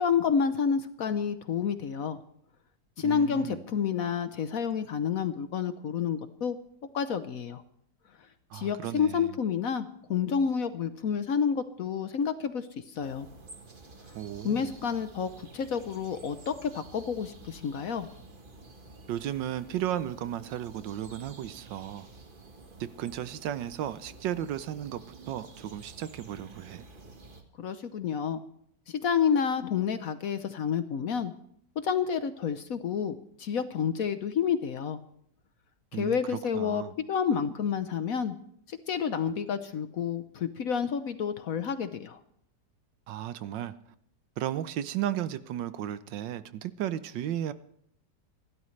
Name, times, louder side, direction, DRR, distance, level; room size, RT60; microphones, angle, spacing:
voice 1, 0.0-2.2 3.0-6.6 6.9-7.6 8.5-13.3 14.4-18.1 27.6-28.4 28.9-31.3 31.8-35.0 35.9-36.8 37.1-38.4 38.7-42.2, left 7 dB, 60° left, 10 dB, 1.0 m, -29 dB
voice 2, 3.0-3.6 8.5-9.3 14.1-14.7 19.1-22.1 22.8-25.0 25.3-26.8 35.9-36.9 43.1-43.7 44.4-47.5, right 11 dB, 80° right, 14 dB, 1.4 m, -34 dB
sound 1, 13.0-27.4, right 3 dB, 30° right, 1.4 m, -51 dB
26.5 x 12.5 x 3.2 m, 0.69 s
omnidirectional pair, 2.0 m